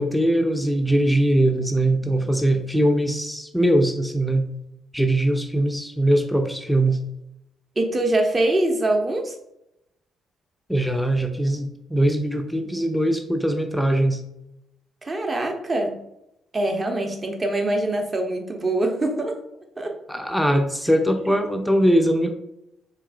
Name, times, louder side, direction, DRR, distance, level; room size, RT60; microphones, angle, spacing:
voice 1, 0.0-4.5 4.9-7.0 10.7-14.2 20.1-22.3, right 1 dB, ahead, 5 dB, 0.5 m, -21 dB
voice 2, 7.8-9.3 15.0-16.0 16.5-19.4 19.8-19.9, right 1 dB, 30° right, 3 dB, 0.8 m, -23 dB
4.6 x 3.3 x 2.4 m, 0.82 s
figure-of-eight pair, 45°, 0 cm